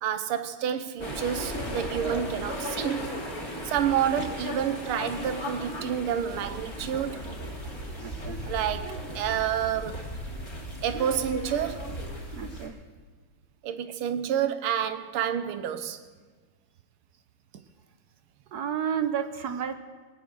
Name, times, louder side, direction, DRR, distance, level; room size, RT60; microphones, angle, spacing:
voice 1, 0.0-3.2 3.7-7.2 8.5-10.1 10.8-11.9 13.6-16.0, right 9 dB, 80° right, 1.8 m, -29 dB
sound 1, 1.0-12.7, equal, 15° left, 2.2 m, -36 dB
voice 2, 8.0-8.4 12.3-12.8 17.5-17.6 18.5-19.7, right 8 dB, 60° right, 1.1 m, -31 dB
21.0 x 9.7 x 6.3 m
omnidirectional pair, 2.4 m